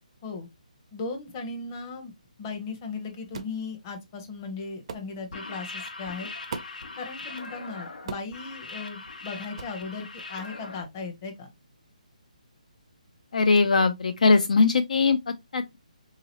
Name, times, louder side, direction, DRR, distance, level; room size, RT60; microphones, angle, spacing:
voice 1, 0.9-2.1 2.4-6.3 7.0-11.5, left 4 dB, 25° left, 0.8 m, -37 dB
sound 1, 3.3-3.6 4.9-5.1 6.5-6.9 8.1-8.4 9.6-9.8, right 5 dB, 45° right, 0.5 m, -38 dB
sound 2, 5.2-10.8, left 3 dB, 80° left, 1.0 m, -40 dB
voice 2, 13.3-15.8, left 4 dB, 65° left, 0.5 m, -21 dB
3.7 x 2.8 x 2.9 m
hypercardioid pair, 160°, 4 cm